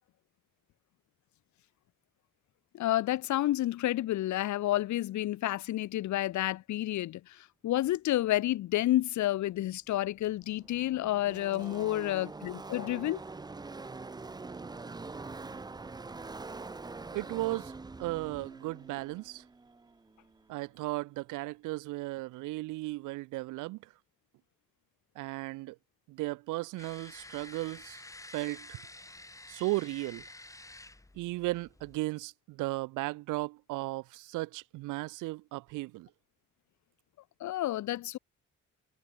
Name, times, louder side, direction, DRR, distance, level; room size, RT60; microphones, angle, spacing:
voice 1, 2.7-7.2 7.6-13.2 37.4-38.2, left 14 dB, 70° left, 0.8 m, -30 dB
Car passing by / Race car auto racing, 9.7-9.8 9.9-20.5, right 3 dB, 15° right, 0.6 m, -44 dB
voice 2, 17.1-17.7 18.0-19.4 20.5-23.8 25.2-25.8 26.1-28.0 28.3-28.8 29.5-30.2 31.2-36.1, right 20 dB, 90° right, 0.5 m, -35 dB
sound 1, 26.8-32.0, left 2 dB, 10° left, 1.6 m, -50 dB
cardioid pair, 90°, 30 cm